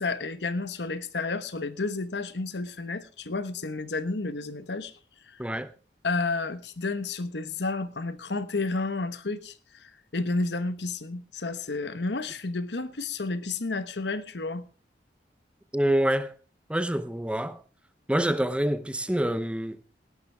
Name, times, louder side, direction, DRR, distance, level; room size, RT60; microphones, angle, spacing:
voice 1, 0.0-4.9 5.3-5.4 6.0-14.6, left 3 dB, 75° left, 1.1 m, -31 dB
voice 2, 5.4-5.7 15.7-16.3 16.7-17.6 18.1-19.9, right 1 dB, 5° right, 0.6 m, -26 dB
18.5 x 12.0 x 3.4 m
head